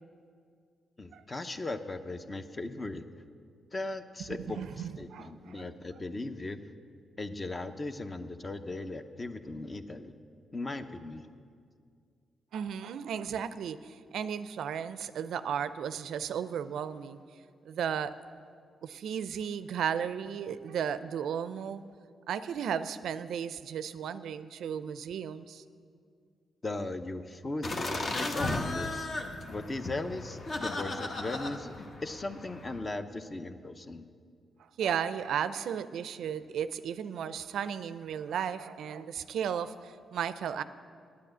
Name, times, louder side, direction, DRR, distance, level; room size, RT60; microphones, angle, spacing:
voice 1, 1.0-3.1 3.7-6.6 7.2-10.1 10.5-11.3 26.6-29.1 29.5-34.0, left 2 dB, 30° left, 9 dB, 0.7 m, -38 dB
voice 2, 4.3-5.7 12.5-17.2 17.7-18.1 18.8-21.8 22.3-25.6 34.8-40.6, right 8 dB, 80° right, 13 dB, 0.4 m, -35 dB
sound 1, 27.6-32.8, left 2 dB, 45° left, 1.1 m, -35 dB
9.5 x 8.5 x 7.9 m, 2.2 s
cardioid pair, 80°, 0 cm